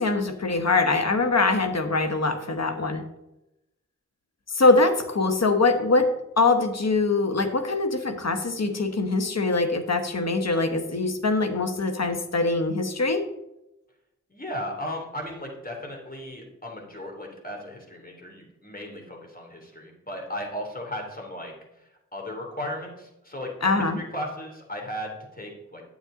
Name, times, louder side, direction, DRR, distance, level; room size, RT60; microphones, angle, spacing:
voice 1, 0.0-3.0 4.5-6.1 6.4-13.2 23.6-24.0, left 3 dB, 55° left, 7 dB, 1.2 m, -23 dB
voice 2, 14.3-21.5 22.1-25.8, left 1 dB, 30° left, 0 dB, 2.8 m, -36 dB
9.4 x 7.1 x 3.8 m, 0.90 s
cardioid pair, 40°, 31 cm